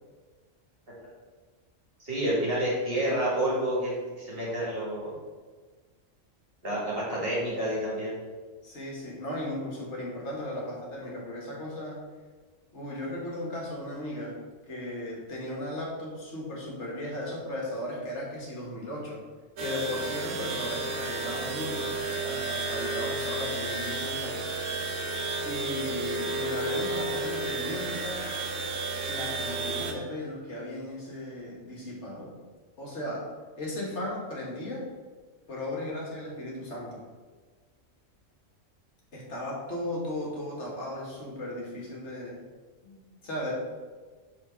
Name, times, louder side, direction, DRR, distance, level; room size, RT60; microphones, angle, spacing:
voice 1, 2.0-5.1 6.6-8.2, right 1 dB, 45° right, -6 dB, 2.2 m, -29 dB
voice 2, 8.6-12.0 12.7-14.4 14.7-19.2 19.6-24.5 25.4-28.3 29.1-32.4 32.8-33.3 33.6-34.9 35.5-37.1 39.1-42.5 42.8-43.5, left 1 dB, 60° left, -3 dB, 1.7 m, -36 dB
sound 1, 19.6-29.9, right 2 dB, 70° right, 1.1 m, -32 dB
4.4 x 4.0 x 5.5 m, 1.4 s
omnidirectional pair, 1.3 m